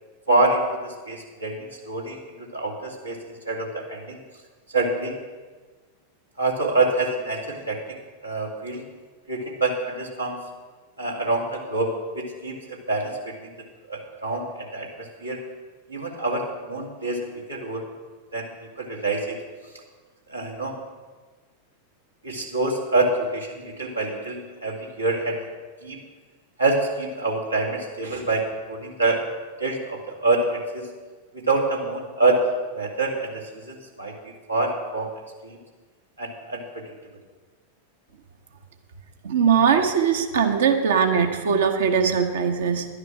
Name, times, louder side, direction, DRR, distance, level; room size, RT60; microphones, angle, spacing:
voice 1, 0.3-3.2 3.5-4.2 4.7-5.2 6.4-7.8 8.2-8.8 9.3-10.4 11.0-13.5 13.9-15.4 15.9-17.2 17.5-17.8 18.3-18.5 18.8-19.4 20.3-20.8 22.2-25.4 25.8-26.0 26.6-29.2 29.6-30.9 31.3-32.4 32.7-34.1 34.5-35.1 35.4-35.6 36.2-36.8, right 2 dB, 85° right, -1 dB, 2.2 m, -26 dB
voice 2, 39.2-42.9, right 7 dB, 60° right, 5 dB, 1.2 m, -20 dB
11.5 x 9.7 x 6.0 m, 1.4 s
figure-of-eight pair, 90°, 0 cm